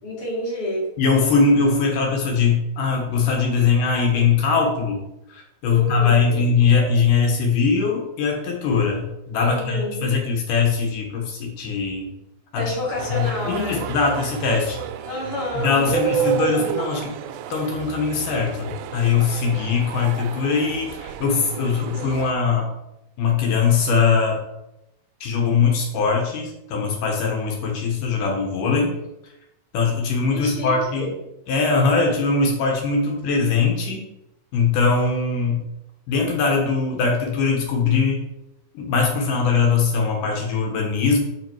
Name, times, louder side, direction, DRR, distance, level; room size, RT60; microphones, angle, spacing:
voice 1, 0.0-0.9 5.7-6.5 9.4-10.1 12.5-13.9 15.1-15.8 30.3-31.1, left 1 dB, 45° left, -5 dB, 2.6 m, -29 dB
voice 2, 1.0-5.0 5.3-12.1 12.5-12.6 13.1-14.8 15.5-17.1 17.5-22.7 23.2-24.4 25.2-28.9 29.7-31.1 31.5-34.0 34.5-35.7 36.1-38.2 38.7-41.2, left 5 dB, 70° left, 0 dB, 2.5 m, -21 dB
sound 1, 13.0-22.3, right 9 dB, 85° right, 2.3 m, -30 dB
5.5 x 5.4 x 4.5 m, 0.87 s
omnidirectional pair, 4.2 m